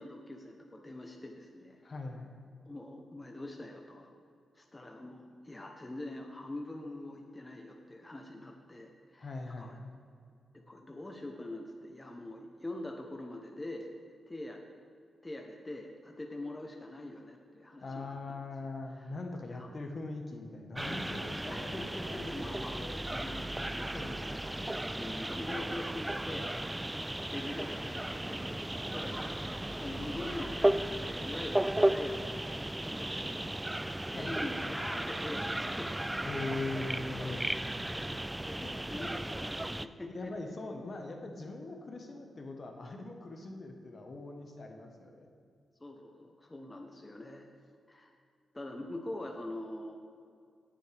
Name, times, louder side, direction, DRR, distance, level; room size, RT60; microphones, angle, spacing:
voice 1, 0.0-1.8 2.6-4.1 4.5-9.3 9.6-9.8 10.7-13.9 14.3-14.6 15.2-18.4 18.9-19.1 19.5-19.8 20.9-26.5 27.3-35.9 37.8-40.3 45.8-47.5 47.9-48.1 48.5-50.0, left 1 dB, 20° left, 1 dB, 1.0 m, -44 dB
voice 2, 1.8-2.3 9.2-9.9 17.8-23.0 23.9-24.7 34.1-34.4 36.2-37.5 38.2-39.1 40.1-45.3, left 2 dB, 45° left, 3 dB, 1.3 m, -42 dB
sound 1, 20.7-39.9, right 1 dB, 10° right, 0.3 m, -35 dB
18.0 x 7.6 x 3.5 m, 2.4 s
cardioid pair, 85°, 0 cm